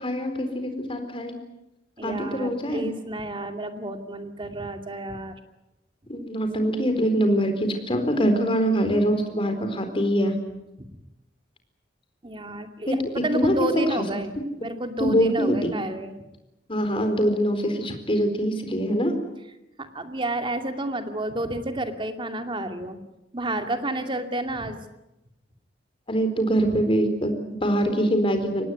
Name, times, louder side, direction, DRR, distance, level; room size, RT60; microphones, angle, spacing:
voice 1, 0.0-1.3 2.0-2.9 6.1-10.4 13.3-13.7 15.0-15.8 16.7-19.1 23.9-24.0 26.1-28.6, equal, 30° left, 7 dB, 4.3 m, -24 dB
voice 2, 2.0-5.4 10.8-10.9 12.2-14.3 14.6-16.1 19.8-23.0 23.3-24.8, right 1 dB, 30° right, 6 dB, 2.5 m, -30 dB
24.5 x 19.5 x 9.6 m, 0.91 s
head